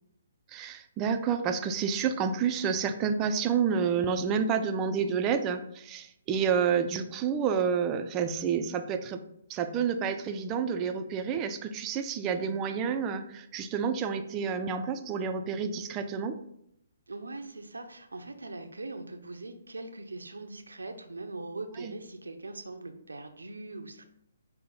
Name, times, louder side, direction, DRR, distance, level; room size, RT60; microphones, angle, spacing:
voice 1, 0.5-9.2 9.5-16.4 21.8-21.9, right 6 dB, 25° right, 7 dB, 0.3 m, -29 dB
voice 2, 17.1-24.0, right 2 dB, 90° right, 6 dB, 0.5 m, -41 dB
5.5 x 2.1 x 3.9 m, 0.75 s
hypercardioid pair, 140°, 0 cm